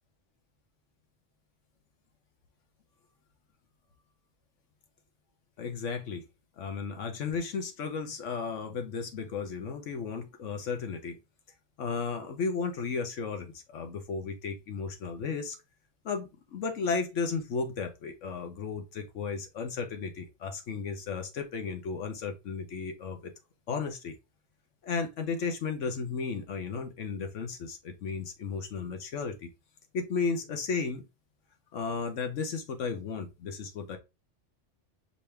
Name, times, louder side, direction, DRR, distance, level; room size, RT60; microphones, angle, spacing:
voice 1, 5.6-6.2 6.6-11.2 11.8-15.6 16.0-23.3 23.7-24.2 24.8-29.5 29.9-31.0 31.7-34.0, left 5 dB, 80° left, 1.3 m, -34 dB
5.2 x 3.0 x 3.3 m
omnidirectional pair, 1.3 m